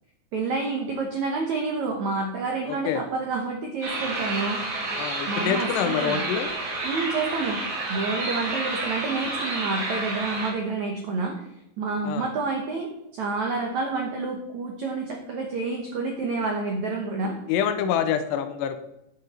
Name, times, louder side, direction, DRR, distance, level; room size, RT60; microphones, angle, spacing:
voice 1, 0.3-4.7 5.3-6.2 6.8-11.4 11.8-12.9 13.2-17.4, right 3 dB, 80° right, 1 dB, 1.6 m, -29 dB
voice 2, 2.7-3.0 5.0-6.5 12.0-12.3 17.5-18.8, left 8 dB, 85° left, 9 dB, 2.8 m, -26 dB
sound 1, 3.8-10.5, right 2 dB, 60° right, 3.9 m, -30 dB
10.5 x 8.2 x 4.3 m, 0.83 s
omnidirectional pair, 5.0 m